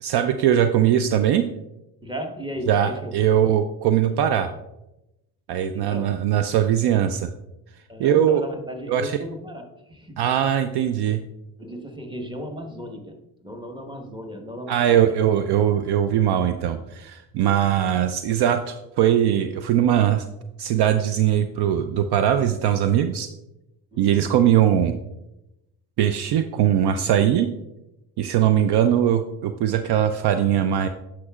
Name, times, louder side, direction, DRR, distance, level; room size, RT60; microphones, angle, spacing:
voice 1, 0.0-1.4 2.7-4.5 5.5-7.3 8.0-8.4 8.9-9.2 10.2-11.2 14.7-20.3 20.6-23.3 24.0-24.9 26.0-27.5 28.2-30.9, right 10 dB, 55° right, 9 dB, 0.6 m, -20 dB
voice 2, 2.0-3.2 5.7-6.1 7.9-10.2 11.6-13.2 13.4-15.1 23.9-24.3, equal, 10° right, 4 dB, 1.3 m, -35 dB
9.6 x 6.0 x 2.4 m, 0.91 s
hypercardioid pair, 50°, 46 cm